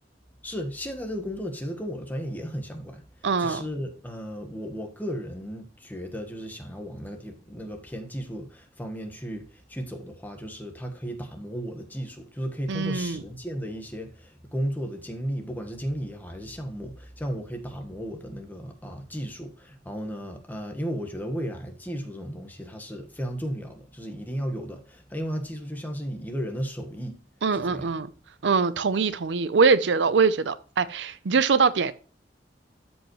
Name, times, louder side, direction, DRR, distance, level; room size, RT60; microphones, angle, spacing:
voice 1, 0.4-3.0 3.4-27.2 27.5-27.9, equal, 10° left, 1.4 m, -34 dB
voice 2, 3.2-3.6 12.7-13.2 27.4-28.1 28.4-31.9, right 5 dB, 85° right, 0.6 m, -23 dB
13.0 x 5.3 x 3.1 m
head